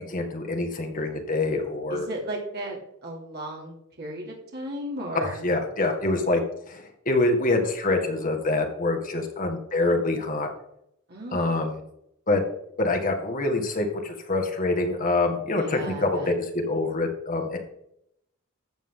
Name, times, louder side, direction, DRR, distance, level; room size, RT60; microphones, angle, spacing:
voice 1, 0.0-2.1 5.2-6.4 6.7-10.5 11.3-11.8 12.3-12.4 12.8-17.6, left 2 dB, 40° left, 3 dB, 1.9 m, -25 dB
voice 2, 1.9-5.5 11.1-11.7 15.5-16.3, right 1 dB, 50° right, -2 dB, 3.0 m, -35 dB
13.5 x 7.4 x 3.8 m, 0.77 s
head